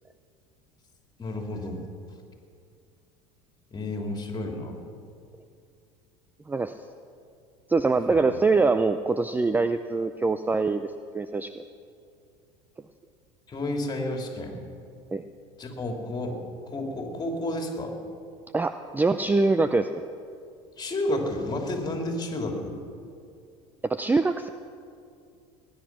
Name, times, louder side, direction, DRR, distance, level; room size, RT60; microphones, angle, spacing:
voice 1, 1.2-1.8 3.7-4.8 8.1-8.3 13.5-14.6 15.6-16.4 16.7-18.0 20.8-22.8, left 1 dB, 25° left, 2 dB, 2.8 m, -31 dB
voice 2, 7.7-11.6 15.1-15.2 18.5-20.1 23.8-24.5, right 3 dB, 10° right, 10 dB, 0.4 m, -24 dB
19.5 x 10.5 x 6.0 m, 2.4 s
supercardioid pair, 100°, 16 cm